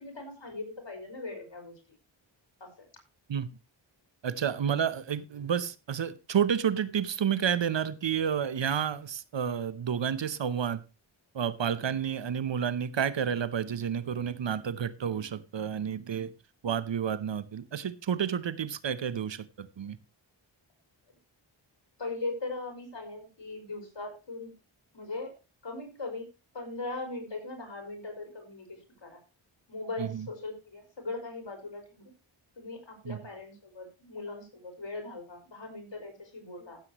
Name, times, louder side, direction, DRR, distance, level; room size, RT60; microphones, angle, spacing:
voice 1, 0.0-1.8 2.6-2.9 11.7-12.0 22.0-24.5 24.9-25.3 25.6-26.3 26.5-29.2 29.7-32.1 32.6-36.8, left 3 dB, 60° left, 4.9 m, -39 dB
voice 2, 4.2-10.8 11.3-16.3 16.6-20.0 30.0-30.3 33.0-33.2, right 8 dB, 65° right, 0.9 m, -30 dB
16.0 x 7.7 x 3.0 m
cardioid pair, 50°, 48 cm